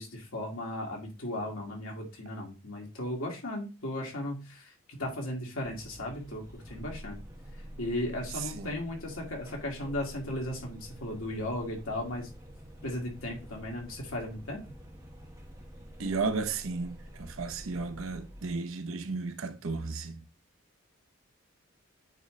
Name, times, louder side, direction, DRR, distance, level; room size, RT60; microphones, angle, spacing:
voice 1, 0.0-4.7 5.0-7.2 7.8-12.3 12.8-14.6, left 1 dB, 90° left, 2.1 m, -36 dB
sound 1, 5.6-18.5, equal, 15° right, 1.1 m, -48 dB
voice 2, 8.3-8.7 16.0-20.2, right 4 dB, 80° right, 0.8 m, -34 dB
9.0 x 3.2 x 3.7 m
head